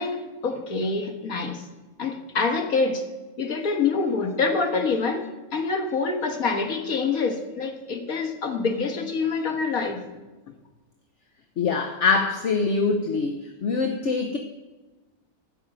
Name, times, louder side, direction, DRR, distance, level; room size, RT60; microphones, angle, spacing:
voice 1, 0.0-1.6 2.0-3.0 3.4-5.3 5.5-10.0, left 4 dB, 85° left, 5 dB, 1.9 m, -26 dB
voice 2, 11.6-13.3 13.6-14.4, left 4 dB, 60° left, 4 dB, 1.2 m, -23 dB
13.0 x 5.4 x 8.8 m, 1.2 s
omnidirectional pair, 1.4 m